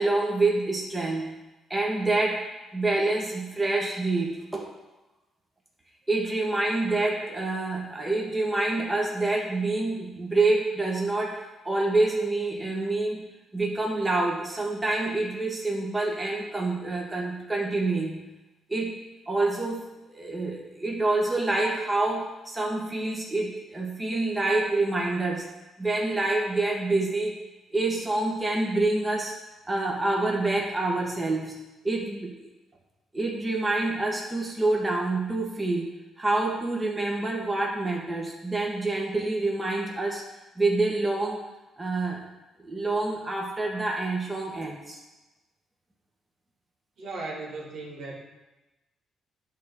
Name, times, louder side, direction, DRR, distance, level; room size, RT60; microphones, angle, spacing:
voice 1, 0.0-1.4 1.7-2.4 2.7-4.7 6.1-13.2 13.5-18.2 18.7-19.9 20.1-25.5 25.8-27.4 27.7-29.3 29.7-31.6 31.8-32.5 33.1-35.9 36.2-40.2 40.6-41.4 41.8-42.2 42.6-45.0, right 2 dB, 20° right, -1 dB, 1.6 m, -27 dB
voice 2, 47.0-48.2, right 3 dB, 70° right, -2 dB, 2.0 m, -36 dB
10.0 x 3.7 x 6.6 m, 1.1 s
cardioid pair, 90°, 0 cm